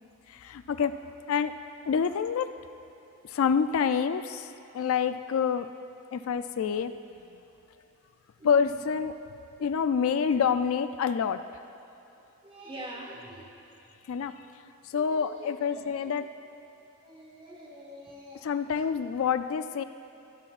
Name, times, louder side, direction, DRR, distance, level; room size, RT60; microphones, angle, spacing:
voice 1, 0.3-0.9 1.3-1.6 1.9-2.5 3.2-5.7 6.1-6.9 8.4-9.1 9.6-11.4 14.1-14.3 14.8-16.2 18.4-19.8, left 6 dB, 70° left, 11 dB, 0.3 m, -27 dB
voice 2, 8.4-8.7 12.4-13.5 14.9-16.1 17.0-18.5, right 1 dB, 25° right, -1 dB, 1.3 m, -45 dB
16.0 x 11.5 x 2.4 m, 2.9 s
head